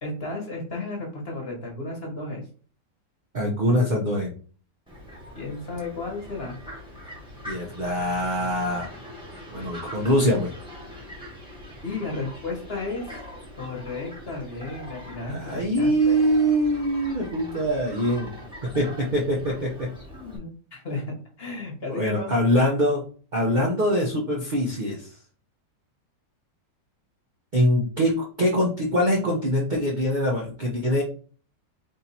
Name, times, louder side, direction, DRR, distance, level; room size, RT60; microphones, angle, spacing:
voice 1, 0.0-2.4 5.3-6.6 11.8-13.2 13.5-16.2 20.1-21.0 21.4-22.4, left 3 dB, 35° left, 0 dB, 1.3 m, -33 dB
voice 2, 3.3-4.3 7.4-8.9 9.5-10.5 15.3-18.3 18.7-19.9 21.9-23.0 23.3-25.1 27.5-31.0, equal, 75° right, -3 dB, 0.4 m, -23 dB
Fowl, 4.9-20.4, left 1 dB, 5° right, 0.9 m, -42 dB
3.7 x 2.7 x 4.1 m, 0.41 s
omnidirectional pair, 2.0 m